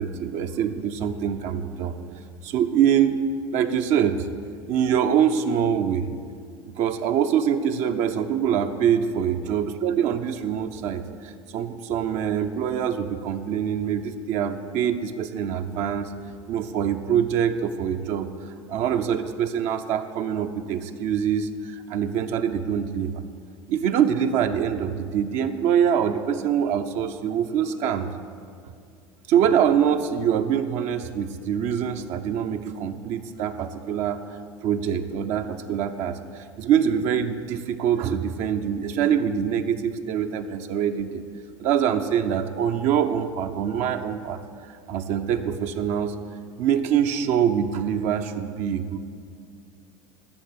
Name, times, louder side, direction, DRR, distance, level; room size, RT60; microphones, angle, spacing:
voice 1, 0.0-3.2 3.5-4.3 4.7-6.1 6.6-16.1 16.5-23.1 23.7-28.1 29.3-41.2 41.6-44.4 44.9-46.2 46.6-49.0, right 8 dB, 55° right, 7 dB, 0.8 m, -24 dB
13.5 x 6.7 x 8.3 m, 2.2 s
hypercardioid pair, 80°, 14 cm